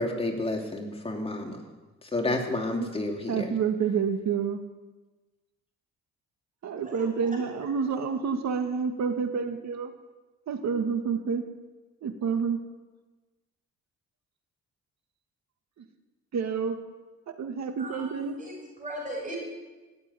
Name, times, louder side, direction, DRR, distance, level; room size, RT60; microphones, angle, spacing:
voice 1, 0.0-1.6 2.1-3.5, left 2 dB, 20° left, 1 dB, 3.1 m, -30 dB
voice 2, 3.3-4.6 6.6-9.9 10.5-11.4 12.0-12.6 16.3-16.8 17.4-18.3, right 6 dB, 65° right, 6 dB, 2.0 m, -28 dB
voice 3, 17.8-19.4, right 1 dB, 25° right, -6 dB, 6.7 m, -38 dB
17.0 x 8.1 x 9.7 m, 1.2 s
cardioid pair, 90°, 30 cm